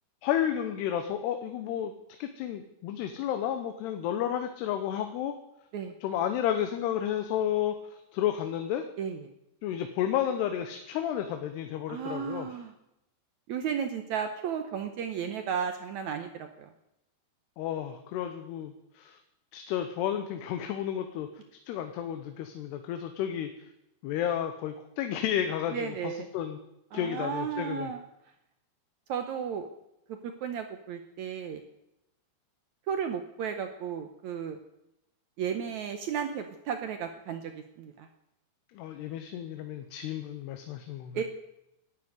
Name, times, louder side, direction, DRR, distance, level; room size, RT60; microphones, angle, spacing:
voice 1, 0.2-1.9 2.2-5.3 6.0-8.8 9.6-12.5 17.6-19.2 19.5-21.3 21.7-23.5 24.0-26.6 26.9-27.9 38.7-41.2, left 10 dB, 90° left, 7 dB, 3.0 m, -32 dB
voice 2, 9.0-9.3 11.9-12.7 13.5-16.7 25.7-26.3 26.9-28.0 29.1-29.7 30.2-31.6 32.9-34.6 35.4-38.1 41.1-41.2, right 7 dB, 80° right, 7 dB, 1.6 m, -34 dB
13.5 x 9.8 x 9.7 m, 0.86 s
omnidirectional pair, 4.6 m